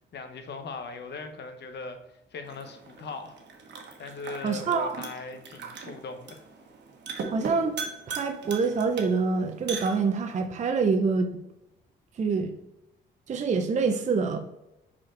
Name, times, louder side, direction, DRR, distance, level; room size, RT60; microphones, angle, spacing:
voice 1, 0.1-3.4 4.0-6.4, left 3 dB, 60° left, 7 dB, 1.0 m, -39 dB
sound 1, 2.4-10.4, right 5 dB, 60° right, 1.2 m, -40 dB
voice 2, 4.4-5.0 7.3-7.7 8.1-11.4 12.2-12.5 13.3-14.4, right 4 dB, 35° right, 5 dB, 0.5 m, -26 dB
5.2 x 4.3 x 4.4 m, 0.90 s
cardioid pair, 90°, 20 cm